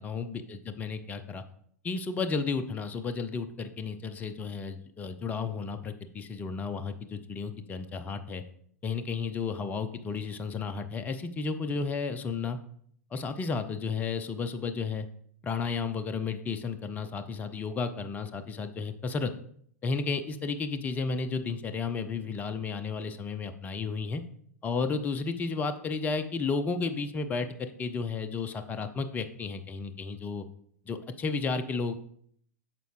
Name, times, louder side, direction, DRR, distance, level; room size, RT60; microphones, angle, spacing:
voice 1, 0.0-1.4 1.8-8.4 8.8-12.6 13.1-15.1 15.4-19.3 19.8-24.2 24.6-30.4 30.9-32.0, left 4 dB, 15° left, 9 dB, 0.5 m, -33 dB
9.0 x 6.5 x 3.2 m, 0.63 s
figure-of-eight pair, 100°, 9 cm